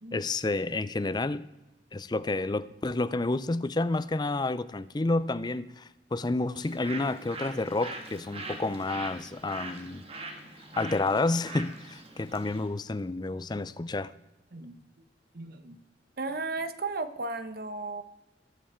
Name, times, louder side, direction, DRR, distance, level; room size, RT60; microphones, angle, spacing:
voice 1, 0.1-1.5 1.9-10.0 10.8-14.1, left 2 dB, 25° left, 0.4 m, -30 dB
Bird, 6.5-12.7, right 2 dB, 35° right, 1.9 m, -42 dB
voice 2, 15.3-15.8 16.2-18.0, right 3 dB, 55° right, 1.0 m, -35 dB
21.5 x 7.2 x 4.4 m
head